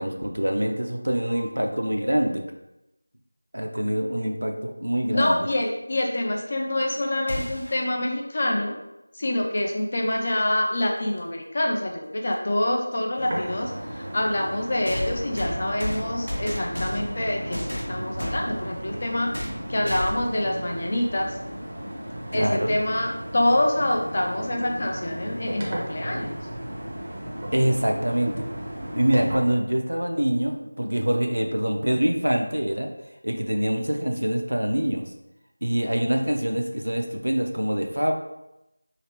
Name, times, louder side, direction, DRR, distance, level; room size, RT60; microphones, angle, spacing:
voice 1, 0.0-2.4 3.5-5.5 22.3-22.8 27.5-28.5 28.9-32.9 33.2-35.0 35.6-38.1, equal, 75° right, 3 dB, 0.5 m, -25 dB
voice 2, 5.1-8.8 9.2-19.3 19.7-21.3 22.3-26.3, left 1 dB, 35° left, 1 dB, 0.4 m, -26 dB
Zombie beatdown FX, 7.3-7.8 10.0-10.1 11.2-11.3 14.9-17.2 17.5-18.5 19.3-19.6 19.8-20.3, equal, 90° left, 0.8 m, -32 dB
sound 1, 13.2-29.4, right 1 dB, 25° right, 0.6 m, -35 dB
3.1 x 2.9 x 3.0 m, 0.90 s
figure-of-eight pair, 170°, 0 cm